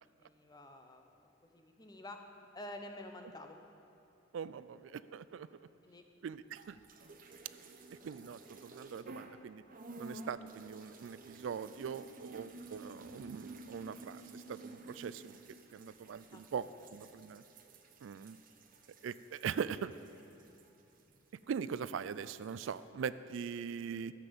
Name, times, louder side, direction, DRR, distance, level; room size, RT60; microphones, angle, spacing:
voice 1, 0.0-2.2 2.5-3.6 5.8-6.0 16.3-17.4 19.5-19.6, left 1 dB, 20° left, 5 dB, 0.8 m, -51 dB
voice 2, 4.3-5.5 6.2-6.8 8.0-9.6 10.0-15.3 15.7-16.6 16.9-17.4 18.0-18.4 19.0-19.9 21.5-24.1, right 7 dB, 75° right, 15 dB, 0.3 m, -41 dB
sound 1, 6.4-9.4 9.7-21.6 21.8-22.8, right 2 dB, 45° right, 0.8 m, -53 dB
13.5 x 7.4 x 6.9 m, 2.8 s
head